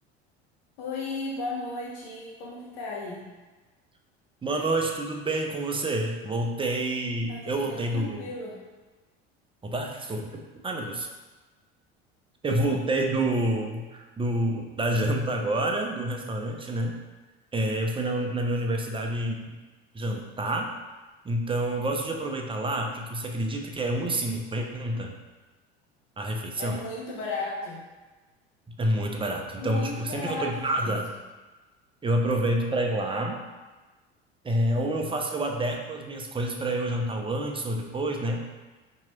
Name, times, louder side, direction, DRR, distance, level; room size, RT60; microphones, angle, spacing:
voice 1, 0.8-3.3 7.3-8.6 26.6-27.8 29.6-31.0, left 3 dB, 65° left, -4 dB, 0.9 m, -35 dB
voice 2, 4.4-8.2 9.6-10.3 10.6-11.1 12.4-17.0 17.5-19.6 19.9-20.7 21.2-25.2 26.2-26.8 28.8-31.1 32.0-33.4 34.4-38.4, right 1 dB, 15° right, 2 dB, 0.5 m, -28 dB
4.5 x 2.9 x 2.9 m, 1.2 s
hypercardioid pair, 75°, 32 cm